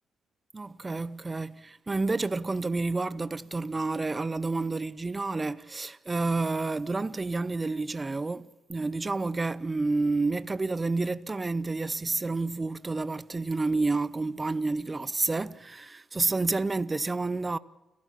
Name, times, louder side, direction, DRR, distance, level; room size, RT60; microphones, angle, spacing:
voice 1, 0.5-17.6, right 3 dB, 25° right, 0.8 m, -29 dB
30.0 x 13.0 x 7.5 m
supercardioid pair, 55°, 0 cm